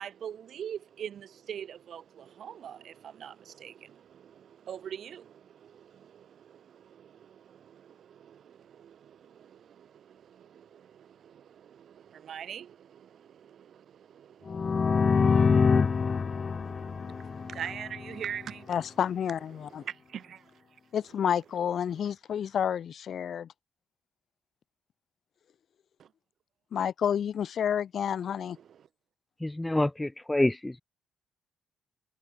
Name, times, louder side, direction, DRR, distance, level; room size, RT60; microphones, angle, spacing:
voice 1, 0.0-18.8 19.5-20.5 26.0-26.1 28.6-28.9, right 9 dB, 60° right, 1.9 m, -44 dB
sound 1, 14.5-18.2, left 5 dB, 40° left, 0.5 m, -25 dB
voice 2, 18.7-19.8 20.9-23.5 26.7-28.6, left 8 dB, 60° left, 2.1 m, -30 dB
voice 3, 29.4-30.8, left 1 dB, 10° left, 1.0 m, -27 dB
cardioid pair, 90°, 0 cm